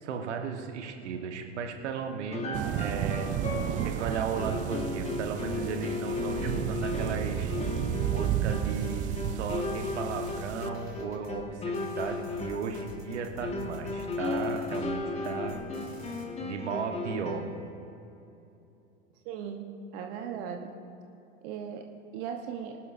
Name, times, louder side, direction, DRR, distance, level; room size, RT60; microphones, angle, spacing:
voice 1, 0.0-3.3 3.8-7.5 8.0-15.5 16.4-17.5, right 6 dB, 60° right, 4 dB, 1.5 m, -35 dB
sound 1, 2.3-17.6, left 3 dB, 15° left, 1.8 m, -36 dB
sound 2, 2.5-10.7, right 11 dB, 20° right, 0.4 m, -32 dB
sound 3, 8.2-16.2, left 1 dB, 85° left, 2.8 m, -47 dB
voice 2, 19.2-19.6 19.9-20.7 21.4-21.8 22.1-22.7, right 8 dB, 45° right, 4 dB, 1.2 m, -37 dB
23.5 x 12.0 x 2.7 m, 2.8 s
figure-of-eight pair, 85°, 38 cm